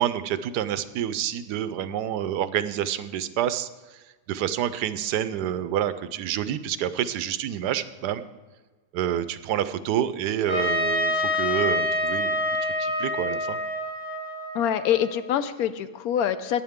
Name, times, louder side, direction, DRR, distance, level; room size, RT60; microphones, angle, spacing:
voice 1, 0.0-4.0 4.3-8.2 8.9-12.5 12.8-13.6, right 10 dB, 85° right, 13 dB, 1.2 m, -28 dB
Trumpet, 10.5-15.3, left 1 dB, 25° right, 4.4 m, -27 dB
voice 2, 14.5-16.6, left 9 dB, 75° left, 12 dB, 1.0 m, -25 dB
14.5 x 9.7 x 3.6 m, 1.3 s
omnidirectional pair, 1.7 m